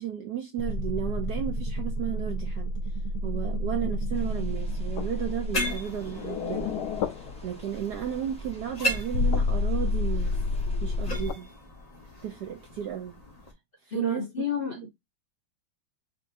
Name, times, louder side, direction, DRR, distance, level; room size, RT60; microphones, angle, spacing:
voice 1, 0.0-2.7 3.2-10.4 10.8-11.5 12.2-13.2 13.9-14.3, right 10 dB, 75° right, 0.9 m, -34 dB
sound 1, 0.6-7.8 8.8-11.3, left 2 dB, 80° left, 0.9 m, -30 dB
sound 2, 4.1-11.2, right 1 dB, 10° left, 0.4 m, -47 dB
sound 3, 5.5-13.5, equal, 25° left, 0.9 m, -37 dB
voice 2, 13.9-14.9, left 7 dB, 65° left, 0.5 m, -31 dB
5.6 x 2.6 x 2.6 m
omnidirectional pair, 2.3 m